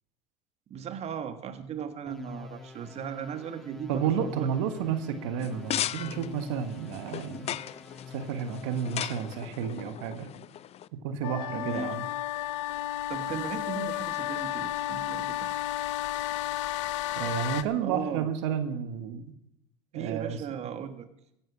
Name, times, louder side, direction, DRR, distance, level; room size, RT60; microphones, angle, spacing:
voice 1, 0.7-4.5 11.6-12.0 13.1-15.7 17.8-18.3 19.9-21.1, right 8 dB, 45° right, 9 dB, 1.6 m, -37 dB
sound 1, 2.1-9.6, left 5 dB, ahead, 2.4 m, -45 dB
voice 2, 3.9-7.6 8.1-10.3 11.0-12.1 17.1-19.3 19.9-20.4, right 8 dB, 75° right, 9 dB, 1.5 m, -31 dB
sound 2, 5.4-10.9, left 11 dB, 40° left, 0.6 m, -37 dB
sound 3, 11.2-17.6, left 15 dB, 75° left, 0.9 m, -32 dB
16.0 x 10.5 x 6.0 m, 0.80 s
hypercardioid pair, 80°, 15 cm